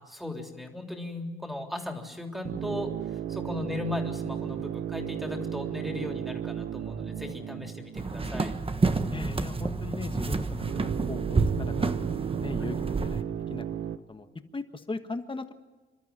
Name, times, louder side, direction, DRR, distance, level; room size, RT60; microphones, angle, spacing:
voice 1, 0.0-8.5, left 2 dB, ahead, 3 dB, 3.4 m, -37 dB
sound 1, 2.4-8.8 10.6-14.0, right 10 dB, 80° right, 1.2 m, -35 dB
sound 2, 8.0-13.2, right 3 dB, 25° right, 1.2 m, -29 dB
voice 2, 9.1-11.7 12.3-13.2 13.5-13.6 14.1-14.3 14.5-15.5, left 3 dB, 25° left, 8 dB, 1.5 m, -38 dB
27.5 x 13.0 x 9.8 m, 1.3 s
cardioid pair, 115°, 21 cm